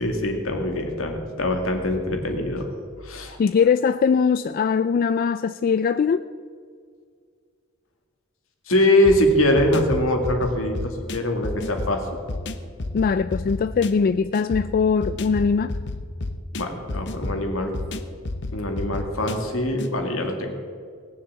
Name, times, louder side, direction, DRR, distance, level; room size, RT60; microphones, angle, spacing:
voice 1, 0.0-2.7 3.0-3.4 8.7-12.0 16.5-17.7 18.5-20.5, left 1 dB, 80° left, 4 dB, 2.1 m, -23 dB
voice 2, 3.4-6.2 12.9-15.7, left 6 dB, 45° left, 12 dB, 0.3 m, -21 dB
sound 1, 9.0-19.9, left 2 dB, 60° left, 0.8 m, -32 dB
19.0 x 7.2 x 7.4 m, 2.1 s
head